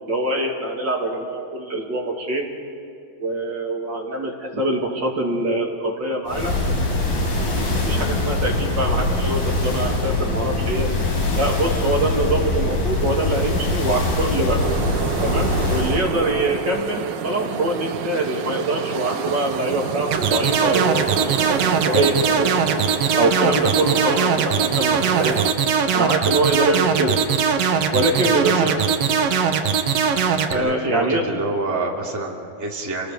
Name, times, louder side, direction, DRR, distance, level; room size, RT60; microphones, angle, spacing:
voice 1, 0.0-2.5 3.2-6.5 7.4-10.9 11.4-14.6 15.2-22.5 23.2-25.4 25.9-27.2 27.9-28.9 30.5-31.2, right 2 dB, 30° right, -1 dB, 2.7 m, -24 dB
sound 1, 6.3-16.1, left 2 dB, 70° left, 5.8 m, -23 dB
sound 2, 14.6-25.5, right 9 dB, 80° right, 2.9 m, -29 dB
sound 3, 20.1-30.5, right 7 dB, 65° right, 1.6 m, -20 dB
voice 2, 28.0-28.8 30.5-33.1, right 2 dB, 5° right, -2 dB, 1.9 m, -27 dB
28.5 x 20.0 x 5.4 m, 2.6 s
omnidirectional pair, 4.3 m